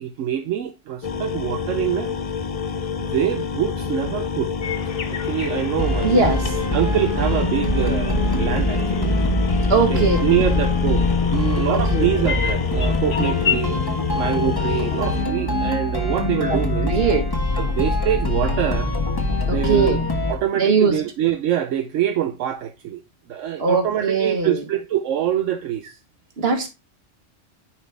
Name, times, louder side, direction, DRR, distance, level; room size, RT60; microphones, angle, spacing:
voice 1, 0.0-2.1 3.1-4.5 5.3-6.3 6.7-9.2 9.9-13.8 14.1-17.0 17.5-18.9 19.5-20.0 20.3-23.0 23.3-26.0, right 11 dB, 80° right, 1.0 m, -25 dB
sound 1, 1.0-15.3, left 6 dB, 45° left, 0.5 m, -26 dB
sound 2, 4.6-13.6, left 6 dB, 75° left, 1.3 m, -33 dB
sound 3, 5.8-20.3, left 1 dB, 20° left, 1.4 m, -24 dB
voice 2, 6.0-6.5 9.7-10.2 11.7-12.1 16.5-16.6 16.9-17.3 19.5-20.0 20.5-21.0 23.6-24.6 26.4-26.7, right 4 dB, 55° right, 1.6 m, -20 dB
10.0 x 4.2 x 3.4 m
omnidirectional pair, 1.3 m